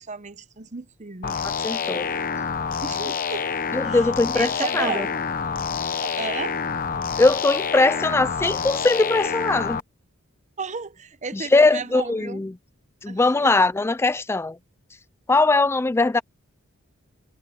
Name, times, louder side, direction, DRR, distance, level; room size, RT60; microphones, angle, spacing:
voice 1, 0.0-1.4 2.8-3.5 3.8-5.2 6.0-6.6 10.6-12.4 13.1-13.6, right 4 dB, 35° right, 0.9 m, -33 dB
sound 1, 1.2-9.8, left 6 dB, 40° left, 0.9 m, -27 dB
voice 2, 1.6-2.1 3.7-5.1 7.2-9.8 11.3-12.5 13.0-14.6 15.3-16.2, left 3 dB, 10° left, 0.3 m, -20 dB
head